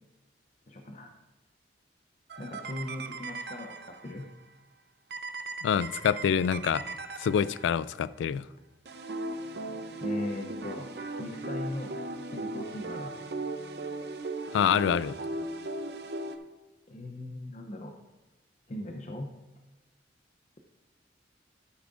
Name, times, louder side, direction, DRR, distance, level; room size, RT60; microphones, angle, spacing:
voice 1, 0.7-1.1 2.4-4.3 10.0-10.9 11.2-12.0 12.3-13.1 16.9-17.9 18.7-19.3, left 1 dB, 40° left, 0.7 m, -38 dB
sound 1, 2.3-4.2 5.1-7.9 8.8-16.4, right 2 dB, 60° right, 0.7 m, -38 dB
voice 2, 5.6-6.8 7.2-8.4 14.5-15.1, left 7 dB, 90° left, 0.3 m, -26 dB
12.0 x 9.4 x 2.5 m
head